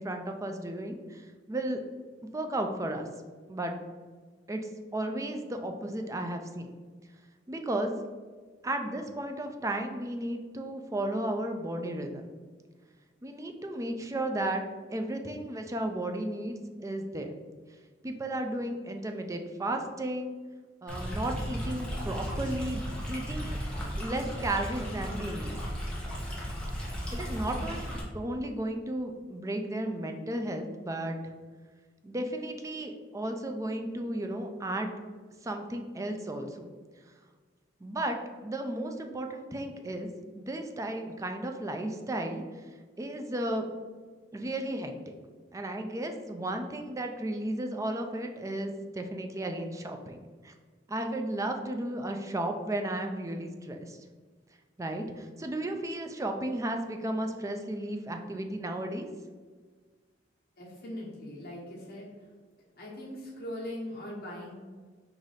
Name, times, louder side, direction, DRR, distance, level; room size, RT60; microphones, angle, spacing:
voice 1, 0.0-1.8 2.3-3.1 3.5-3.7 4.5-4.6 4.9-6.8 7.5-7.9 8.6-12.3 13.2-14.6 14.9-17.4 18.0-20.4 20.8-23.6 24.0-25.6 26.8-31.3 32.0-34.9 35.4-36.7 37.8-40.1 40.3-42.4 43.0-43.7 44.3-45.1 45.5-50.2 50.4-50.5 50.9-54.0 54.8-59.1, right 1 dB, 20° right, 4 dB, 0.4 m, -34 dB
Stream, 20.9-28.0, equal, 5° left, 0.9 m, -35 dB
voice 2, 60.6-62.3 62.8-64.5, left 1 dB, 55° left, -5 dB, 1.3 m, -40 dB
4.9 x 2.6 x 4.0 m, 1.5 s
head